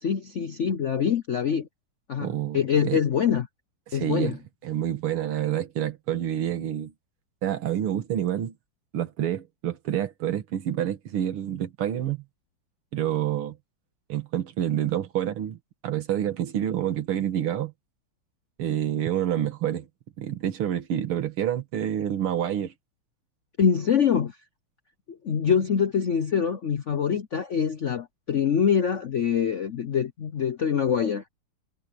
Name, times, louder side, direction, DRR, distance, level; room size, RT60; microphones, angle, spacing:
voice 1, 0.0-1.7 2.1-3.5 3.9-4.4 23.6-24.4 25.1-31.2, left 7 dB, 65° left, 0.7 m, -24 dB
voice 2, 2.2-3.0 3.9-4.4 4.6-6.9 7.4-8.5 8.9-12.2 12.9-13.6 14.1-15.6 15.8-17.7 18.6-19.9 20.2-22.7, right 10 dB, 90° right, 2.4 m, -28 dB
omnidirectional pair, 2.3 m